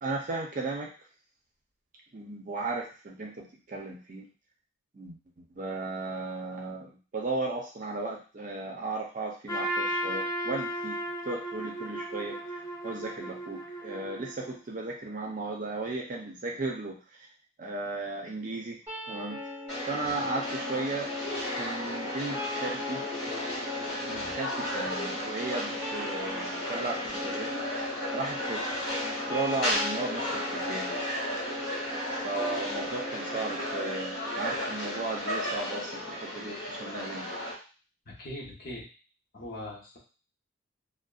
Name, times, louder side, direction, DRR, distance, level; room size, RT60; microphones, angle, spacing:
voice 1, 0.0-0.9 2.1-4.3 4.9-11.0 11.3-12.4 12.8-17.0 17.6-18.8 19.1-19.4 19.9-21.1 21.5-23.0 24.0-27.5 28.1-28.8 29.1-31.0 32.2-37.3, right 3 dB, 40° right, 0 dB, 0.5 m, -35 dB
Trumpet, 9.5-14.6, right 1 dB, 20° left, 0.4 m, -35 dB
sound 1, 18.9-34.9, left 2 dB, 15° right, 0.8 m, -39 dB
sound 2, 19.7-37.5, equal, 65° left, 1.2 m, -34 dB
voice 2, 38.1-38.9 39.3-40.0, left 1 dB, 50° left, -3 dB, 0.7 m, -41 dB
2.5 x 2.1 x 2.3 m, 0.35 s
head